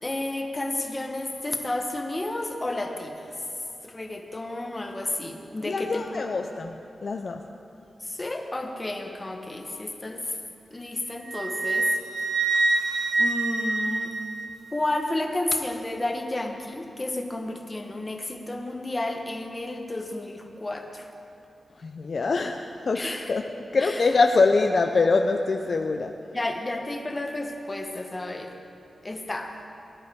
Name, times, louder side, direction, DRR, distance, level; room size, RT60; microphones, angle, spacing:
voice 1, 0.0-3.3 3.8-6.3 8.0-10.4 10.7-11.9 13.2-14.1 14.7-21.1 22.9-23.3 23.8-24.1 26.3-28.6 29.0-29.5, left 2 dB, 25° left, 4 dB, 1.1 m, -31 dB
voice 2, 5.6-6.8 7.0-7.4 21.8-26.2, left 3 dB, 55° left, 4 dB, 0.5 m, -24 dB
Wind instrument woodwind instrument, 11.3-14.8, right 3 dB, 85° right, 1.0 m, -26 dB
18.5 x 10.5 x 3.6 m, 2.7 s
wide cardioid pair, 105°, 0 cm